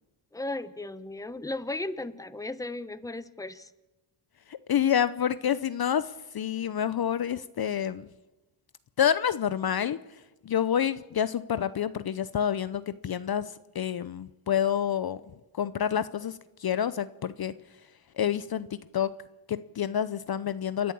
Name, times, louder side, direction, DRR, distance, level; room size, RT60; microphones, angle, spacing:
voice 1, 0.3-3.7, left 2 dB, 5° left, 13 dB, 1.0 m, -35 dB
voice 2, 4.5-8.1 9.0-10.0 10.4-15.2 15.5-17.5 18.2-18.7 18.9-19.1 19.5-20.9, left 9 dB, 45° left, 14 dB, 0.8 m, -28 dB
29.0 x 11.0 x 8.6 m, 1.1 s
cardioid pair, 75°, 50 cm